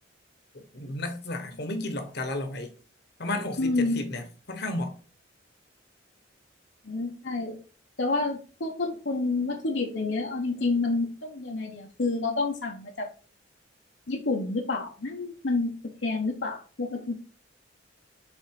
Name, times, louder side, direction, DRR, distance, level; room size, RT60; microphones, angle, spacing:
voice 1, 0.5-2.7 3.2-5.0, left 1 dB, 60° left, 1.2 m, -33 dB
voice 2, 3.6-4.0 6.8-7.5 8.0-13.1 14.1-15.7 16.0-17.1, left 3 dB, 75° left, 1.0 m, -29 dB
5.4 x 3.9 x 4.8 m
head